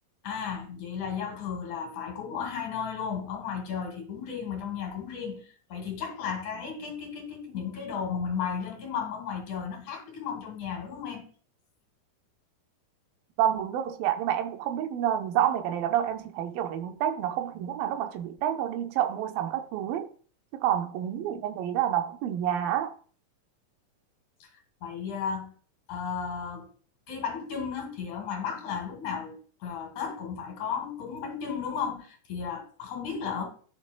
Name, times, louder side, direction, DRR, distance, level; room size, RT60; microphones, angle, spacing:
voice 1, 0.2-11.2 24.4-24.5 24.8-25.5 25.9-26.7 27.1-33.5, left 6 dB, 60° left, 3.7 m, -34 dB
voice 2, 13.4-20.1 20.5-22.9, right 11 dB, 90° right, 2.6 m, -28 dB
12.0 x 6.6 x 2.3 m
omnidirectional pair, 4.0 m